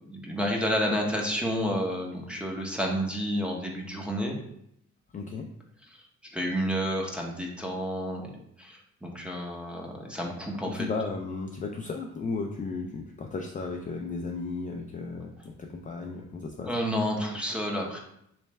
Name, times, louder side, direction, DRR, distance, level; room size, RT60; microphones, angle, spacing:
voice 1, 0.0-4.4 6.3-10.9 16.7-18.0, equal, 5° right, 0 dB, 0.8 m, -30 dB
voice 2, 5.1-5.5 10.6-16.7, left 4 dB, 25° left, 2 dB, 0.4 m, -34 dB
3.2 x 3.2 x 3.3 m, 0.76 s
cardioid pair, 90°, 30 cm